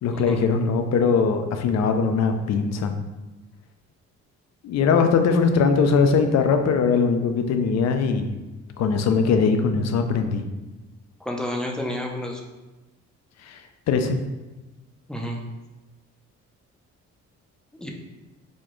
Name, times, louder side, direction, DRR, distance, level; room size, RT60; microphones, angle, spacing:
voice 1, 0.0-3.0 4.6-8.3 8.8-10.5 13.4-13.6 13.9-14.2, left 5 dB, 60° left, 6 dB, 0.5 m, -21 dB
voice 2, 11.2-12.4 15.1-15.4 17.8-17.9, left 1 dB, 5° left, 0 dB, 0.5 m, -30 dB
4.2 x 2.2 x 3.0 m, 1.1 s
cardioid pair, 90°, 30 cm